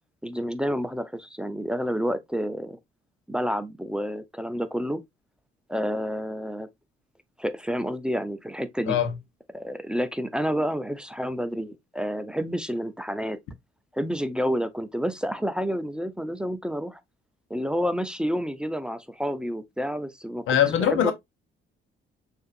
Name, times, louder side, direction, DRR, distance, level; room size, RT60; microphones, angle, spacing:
voice 1, 0.2-2.8 3.3-5.0 5.7-6.7 7.4-9.0 9.5-13.4 13.9-17.0 17.5-20.4 20.8-21.1, equal, 5° right, 0.5 m, -29 dB
voice 2, 20.5-21.1, left 9 dB, 85° left, 1.0 m, -22 dB
6.4 x 2.7 x 2.5 m
cardioid pair, 90°, 20 cm